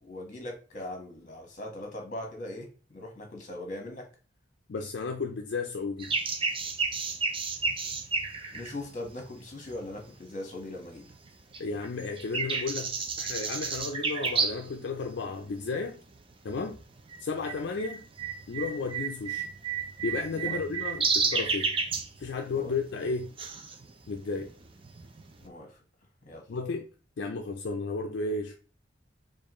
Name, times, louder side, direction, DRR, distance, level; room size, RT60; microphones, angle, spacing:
voice 1, 0.0-4.1 8.5-11.1 20.3-20.6 22.5-22.7 25.4-25.8 26.2-26.5, left 1 dB, 45° left, 1.3 m, -40 dB
voice 2, 4.7-6.1 11.6-16.0 16.4-16.8 17.2-18.0 18.5-19.5 20.0-21.7 22.2-23.3 24.1-24.5 26.5-26.9 27.2-28.6, left 4 dB, 70° left, 0.4 m, -33 dB
sound 1, 6.0-10.0 10.5-11.3 11.5-14.7 15.0-15.1 15.8-16.2 16.5-25.5, right 4 dB, 30° right, 0.5 m, -32 dB
4.5 x 2.5 x 3.0 m
head